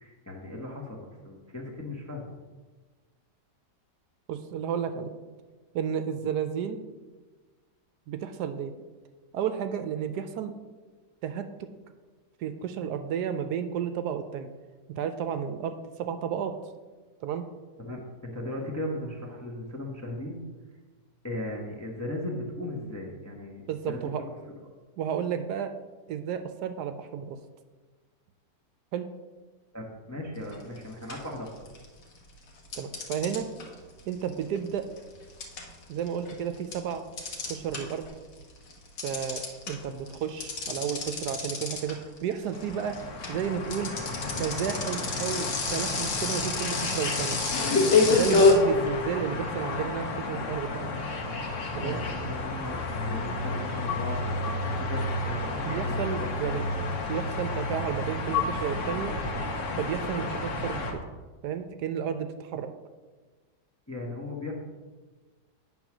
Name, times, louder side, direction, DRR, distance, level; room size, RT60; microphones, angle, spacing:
voice 1, 0.0-2.3 17.8-20.4 21.2-23.6 23.9-24.1 29.7-31.7 51.8-56.5 63.9-64.5, left 1 dB, 15° left, -1 dB, 0.6 m, -37 dB
voice 2, 4.3-5.1 5.7-6.8 8.1-8.7 9.3-10.5 11.2-11.5 12.4-14.5 15.0-16.6 17.2-17.5 23.7-24.2 25.0-25.7 26.1-27.4 28.9-29.1 32.7-33.5 34.1-34.9 35.9-37.0 37.5-38.1 39.0-43.0 43.3-43.9 44.4-47.4 48.1-50.9 51.7-52.0 55.7-56.7 57.1-59.1 59.8-60.9 61.4-62.7, right 8 dB, 75° right, 9 dB, 1.1 m, -32 dB
sound 1, 30.5-30.8 31.1-32.0 32.7-38.1 38.4-48.5, left 4 dB, 80° left, 1.8 m, -27 dB
sound 2, 42.4-60.9, left 2 dB, 55° left, 1.1 m, -32 dB
9.0 x 3.9 x 5.9 m, 1.3 s
omnidirectional pair, 1.9 m